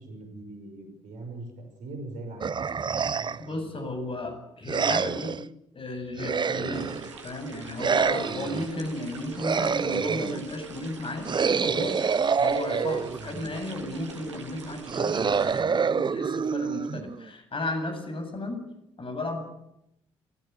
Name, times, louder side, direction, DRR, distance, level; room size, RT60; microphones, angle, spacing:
voice 1, 0.0-2.5 2.8-3.6 8.3-8.6 13.2-13.5, right 2 dB, 60° right, 5 dB, 6.4 m, -42 dB
sound 1, 2.4-3.5 4.7-5.4 6.2-7.1 7.8-8.7 9.4-10.4 11.3-13.3 14.9-17.3, right 6 dB, 30° right, 0.8 m, -27 dB
voice 2, 3.4-5.3 5.7-6.9 7.2-11.3 11.6-12.0 12.4-18.6 19.0-19.4, left 1 dB, 35° left, 6 dB, 7.8 m, -34 dB
sound 2, 6.7-15.6, right 4 dB, 85° right, 2.2 m, -45 dB
30.0 x 16.0 x 8.5 m, 0.81 s
figure-of-eight pair, 45°, 15 cm